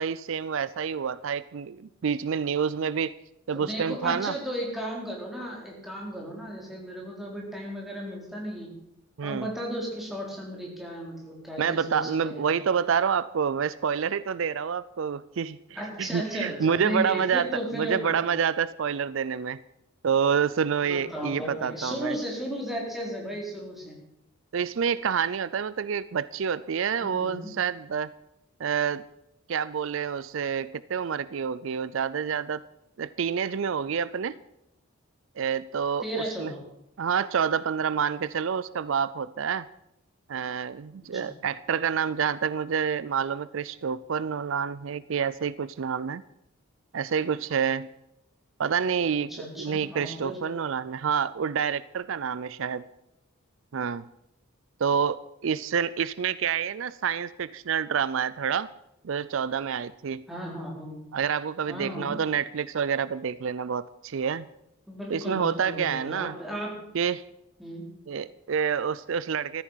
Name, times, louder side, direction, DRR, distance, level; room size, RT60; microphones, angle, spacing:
voice 1, 0.0-3.1 3.5-4.3 9.2-9.5 11.6-15.6 16.0-19.6 20.0-22.1 24.5-28.1 28.6-29.0 29.5-32.6 33.0-34.3 35.4-36.5 37.0-39.7 40.3-46.2 46.9-47.9 48.6-49.3 49.6-52.8 53.7-54.0 54.8-58.7 59.0-60.2 61.1-64.5 65.1-66.3 66.9-67.2 68.1-69.6, right 7 dB, 65° right, 17 dB, 0.4 m, -28 dB
voice 2, 3.5-8.7 9.2-12.4 15.7-18.3 20.8-24.0 27.0-27.5 36.0-36.6 41.0-41.3 49.3-50.4 60.3-61.0 61.7-62.1 64.9-66.7 67.6-67.8, equal, ahead, -3 dB, 4.0 m, -35 dB
14.5 x 13.5 x 5.6 m, 0.84 s
head